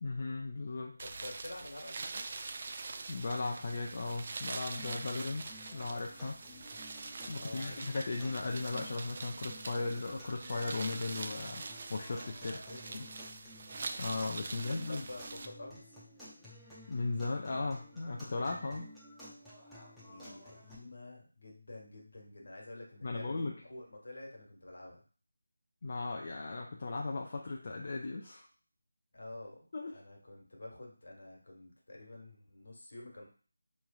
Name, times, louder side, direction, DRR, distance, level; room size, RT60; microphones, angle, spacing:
voice 1, 0.0-1.0 3.1-6.4 7.3-12.6 12.9-13.0 14.0-15.1 16.9-18.9 23.0-23.6 25.8-28.5 29.7-29.9, left 3 dB, 45° left, 0 dB, 0.4 m, -37 dB
voice 2, 1.0-2.2 7.3-7.8 12.4-13.1 14.6-16.0 20.0-25.0 29.1-29.6 29.9-33.3, left 2 dB, 65° left, -1 dB, 1.4 m, -49 dB
sound 1, 1.0-15.5, right 3 dB, 40° right, 0.3 m, -44 dB
sound 2, 4.8-20.8, left 1 dB, ahead, 0.7 m, -53 dB
4.5 x 3.1 x 2.4 m, 0.40 s
figure-of-eight pair, 165°, 0 cm